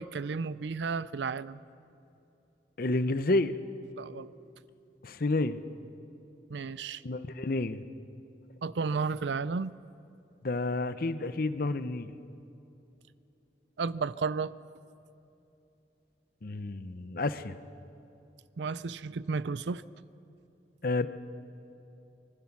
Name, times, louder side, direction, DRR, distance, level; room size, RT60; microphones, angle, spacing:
voice 1, 0.0-1.6 4.0-4.3 6.5-7.0 8.6-9.7 13.8-14.5 18.6-19.8, right 4 dB, 80° right, 17 dB, 0.5 m, -33 dB
voice 2, 2.8-3.5 5.0-5.6 7.0-7.8 10.4-12.1 16.4-17.6 20.8-21.1, left 2 dB, 55° left, 12 dB, 0.7 m, -30 dB
25.0 x 21.0 x 6.0 m, 2.9 s
head